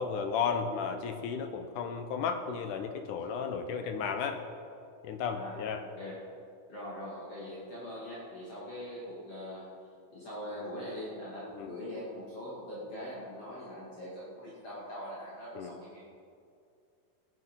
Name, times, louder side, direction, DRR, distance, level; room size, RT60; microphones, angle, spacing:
voice 1, 0.0-4.4 5.0-5.8 11.5-11.7 15.6-15.8, left 6 dB, 75° left, 7 dB, 2.2 m, -34 dB
voice 2, 5.3-6.2 6.7-9.7 10.1-16.0, left 1 dB, 45° left, -8 dB, 3.2 m, -42 dB
18.5 x 9.4 x 5.4 m, 2.4 s
omnidirectional pair, 3.9 m